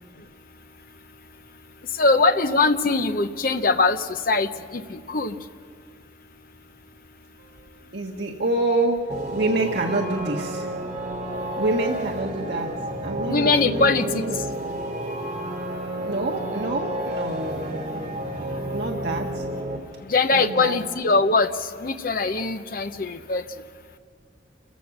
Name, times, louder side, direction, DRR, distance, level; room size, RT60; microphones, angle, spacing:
voice 1, 2.0-5.3 13.3-14.0 20.1-21.5 21.8-23.4, left 3 dB, 50° left, 8 dB, 0.8 m, -21 dB
voice 2, 7.4-9.0 9.3-10.7 11.6-12.7 13.0-14.5 16.0-18.0 18.7-19.4 20.3-20.8, right 2 dB, 70° right, 0 dB, 1.5 m, -27 dB
sound 1, 9.1-19.8, right 1 dB, 40° right, 3.0 m, -31 dB
28.5 x 15.0 x 6.0 m, 2.2 s
head